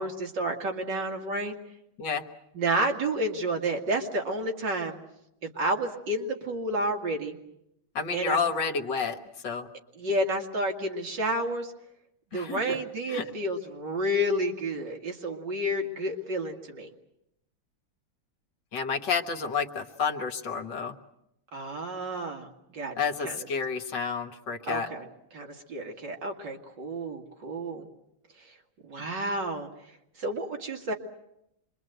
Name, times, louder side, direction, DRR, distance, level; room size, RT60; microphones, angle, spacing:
voice 1, 0.0-1.6 2.5-5.0 5.4-7.4 8.1-8.4 10.0-11.7 12.3-16.9 21.5-22.9 23.2-23.5 24.7-25.1 25.3-27.9 28.4-28.5 28.8-29.7 30.2-30.9, right 1 dB, 60° right, 2 dB, 2.7 m, -30 dB
voice 2, 8.0-9.2 9.4-9.7 12.3-12.8 13.1-13.2 18.7-21.0 23.0-24.9, left 5 dB, 65° left, 7 dB, 1.9 m, -30 dB
26.5 x 23.0 x 8.0 m, 0.82 s
omnidirectional pair, 2.2 m